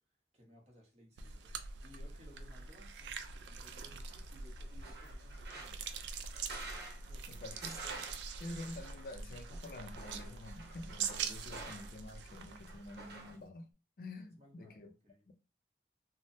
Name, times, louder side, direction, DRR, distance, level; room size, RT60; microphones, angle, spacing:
voice 1, 0.3-1.5 1.8-3.2 3.5-5.9 7.0-7.6 11.5-11.7 14.4-15.2, equal, 35° right, 1.0 m, -61 dB
sound 1, 1.2-13.4, right 5 dB, 90° right, 0.3 m, -44 dB
sound 2, 2.3-13.4, right 3 dB, 70° right, 0.9 m, -51 dB
voice 2, 7.3-7.8 8.4-13.7 14.0-14.9 15.3-15.4, left 2 dB, 55° left, 0.4 m, -48 dB
3.2 x 2.1 x 2.6 m
head